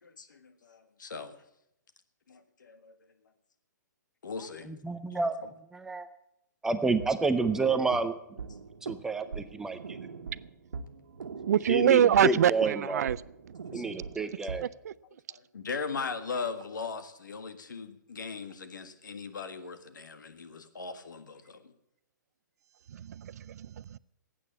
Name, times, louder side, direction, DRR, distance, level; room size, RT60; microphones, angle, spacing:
voice 1, 0.0-1.3 2.3-2.9 4.2-4.7 5.1-5.2 11.4-11.5 13.7-13.8 15.3-21.7, left 5 dB, 80° left, 1.6 m, -39 dB
voice 2, 4.7-5.3 5.7-6.1 6.6-8.1 8.8-10.0 11.7-13.1 13.7-14.7, right 3 dB, 5° right, 0.5 m, -29 dB
sound 1, 7.0-14.6, right 5 dB, 80° right, 1.4 m, -42 dB
voice 3, 11.5-13.2 14.8-14.9 23.0-24.0, right 10 dB, 60° right, 0.4 m, -24 dB
12.5 x 8.7 x 8.4 m
hypercardioid pair, 155°, 10 cm